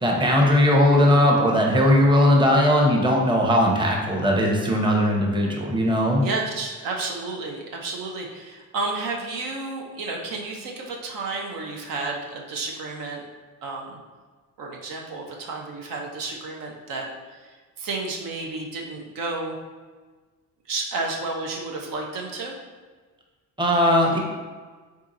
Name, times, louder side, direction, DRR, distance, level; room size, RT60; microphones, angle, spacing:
voice 1, 0.0-6.2 23.6-24.2, equal, 15° right, -1 dB, 0.8 m, -19 dB
voice 2, 6.2-13.2 13.6-14.0 14.6-17.1 17.4-19.6 20.7-22.5, right 3 dB, 75° right, 0 dB, 0.7 m, -31 dB
3.6 x 2.8 x 3.8 m, 1.4 s
cardioid pair, 85°, 33 cm